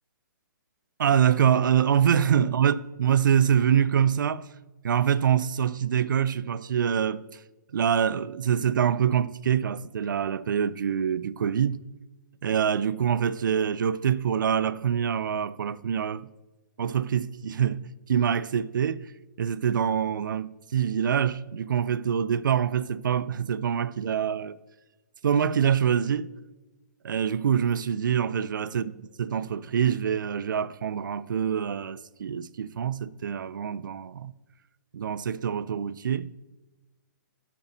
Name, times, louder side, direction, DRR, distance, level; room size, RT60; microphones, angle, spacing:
voice 1, 1.0-4.5 4.8-7.4 7.7-11.8 12.4-16.3 16.8-19.1 19.4-24.6 25.2-26.3 27.0-28.8 29.2-34.3 34.9-36.3, right 8 dB, 80° right, 0.4 m, -25 dB
14.0 x 5.3 x 2.7 m
hypercardioid pair, 155°, 11 cm